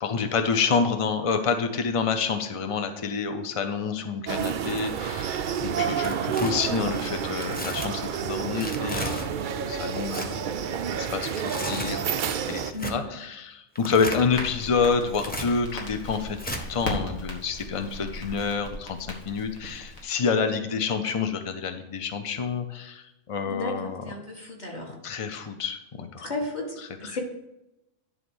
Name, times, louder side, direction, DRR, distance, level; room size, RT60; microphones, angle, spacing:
voice 1, 0.0-10.4 11.0-12.2 12.5-24.0 25.0-26.3 26.8-27.2, left 5 dB, 55° left, 7 dB, 0.3 m, -28 dB
sound 1, 4.3-12.7, right 8 dB, 80° right, 0.4 m, -29 dB
Tearing, 5.8-6.5 7.4-7.9 8.6-9.3 10.0-10.3 11.1-12.0 12.7-13.0 13.8-14.3 15.1-15.5 16.4-16.6, equal, 10° left, 0.7 m, -34 dB
voice 2, 12.7-13.1 23.4-25.0 26.2-27.2, left 2 dB, 30° left, -1 dB, 1.9 m, -34 dB
Crackle, 14.3-20.0, left 1 dB, 80° left, 1.9 m, -37 dB
11.0 x 3.7 x 6.2 m, 0.90 s
omnidirectional pair, 1.4 m